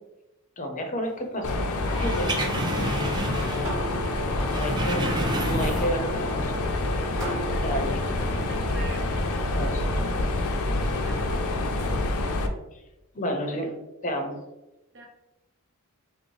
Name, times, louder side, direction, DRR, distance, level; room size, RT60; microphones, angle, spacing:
voice 1, 0.6-1.6 2.0-2.3 4.4-6.5 7.6-8.0 9.5-10.0 12.7-12.8 13.1-13.8 14.0-14.4, equal, 35° left, 3 dB, 0.6 m, -31 dB
Mechanisms, 1.4-12.5, left 2 dB, 75° left, 0.5 m, -27 dB
sound 1, 1.9-3.8 4.1-6.1 6.4-6.5, right 1 dB, 20° right, 0.3 m, -30 dB
voice 2, 3.0-6.4 8.2-9.2 10.9-11.6 14.9-15.1, right 3 dB, 55° right, 2 dB, 0.7 m, -45 dB
sound 2, 3.2-9.1, right 3 dB, 85° right, 0.9 m, -40 dB
5.1 x 2.0 x 3.1 m, 0.95 s
head